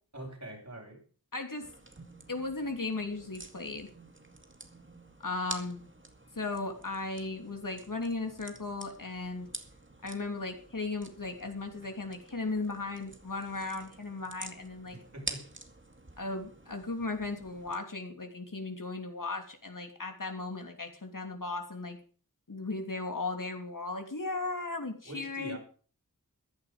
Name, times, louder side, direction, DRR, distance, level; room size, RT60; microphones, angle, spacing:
voice 1, 0.1-1.0 14.9-15.5 25.0-25.6, right 1 dB, 50° right, 2 dB, 5.9 m, -44 dB
voice 2, 1.3-1.7 2.3-3.9 5.2-5.8 6.4-9.5 10.0-15.0 16.2-22.0 22.5-25.6, left 3 dB, 60° left, 4 dB, 3.1 m, -36 dB
sound 1, 1.6-17.8, right 2 dB, 35° right, 2.2 m, -48 dB
15.5 x 11.0 x 5.2 m, 0.41 s
wide cardioid pair, 45°, 36 cm